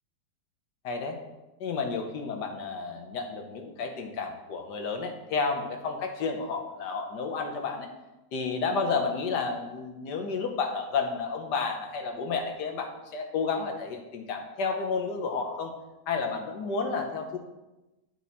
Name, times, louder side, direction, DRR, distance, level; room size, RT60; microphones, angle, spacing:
voice 1, 0.8-1.2 1.6-7.9 8.3-15.7 16.1-17.4, left 4 dB, 70° left, 4 dB, 1.6 m, -31 dB
11.0 x 4.5 x 4.1 m, 1.0 s
omnidirectional pair, 1.9 m